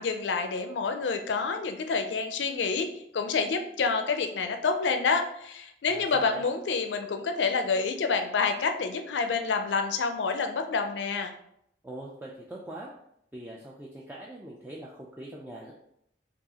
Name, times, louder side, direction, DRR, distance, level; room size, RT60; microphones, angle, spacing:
voice 1, 0.0-11.3, left 4 dB, 80° left, 6 dB, 0.4 m, -28 dB
voice 2, 5.9-6.5 11.8-12.9 13.3-15.7, right 1 dB, 10° right, -3 dB, 0.4 m, -42 dB
4.6 x 2.4 x 2.8 m, 0.74 s
head